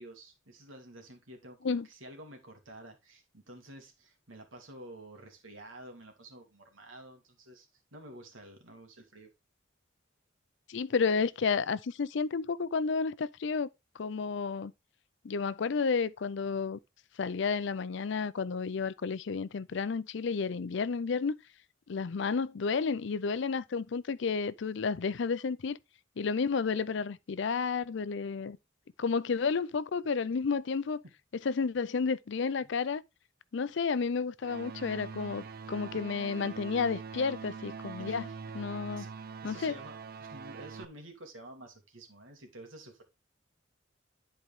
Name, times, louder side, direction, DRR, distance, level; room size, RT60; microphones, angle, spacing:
voice 1, 0.0-9.3 32.6-32.7 38.0-38.4 38.9-39.1 39.4-43.0, right 1 dB, 90° right, 2.4 m, -50 dB
voice 2, 10.7-13.7 14.0-14.7 15.2-16.8 17.2-21.4 21.9-25.8 26.2-28.6 29.0-31.0 31.4-33.0 33.5-38.3 38.5-39.1 39.4-39.8, left 5 dB, 65° left, 0.5 m, -31 dB
sound 1, 34.4-40.9, right 5 dB, 50° right, 0.5 m, -43 dB
10.5 x 4.5 x 3.5 m
head